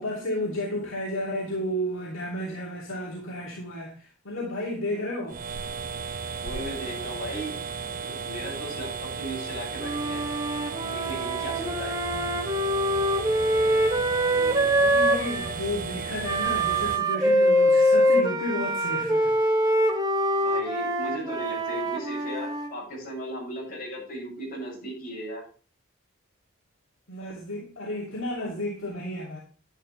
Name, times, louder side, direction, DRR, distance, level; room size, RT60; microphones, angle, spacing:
voice 1, 0.0-5.4 12.0-12.5 14.8-19.3 27.1-29.4, left 1 dB, 65° left, -4 dB, 2.8 m, -32 dB
sound 1, 5.3-17.0, right 5 dB, 40° right, 0.5 m, -34 dB
voice 2, 6.3-7.6 8.0-10.2 10.9-11.9 14.1-15.0 20.3-25.4, equal, 40° left, -4 dB, 6.7 m, -37 dB
Wind instrument woodwind instrument, 9.8-15.5 16.2-22.7, equal, 20° right, 1.2 m, -24 dB
11.0 x 11.0 x 3.3 m, 0.38 s
head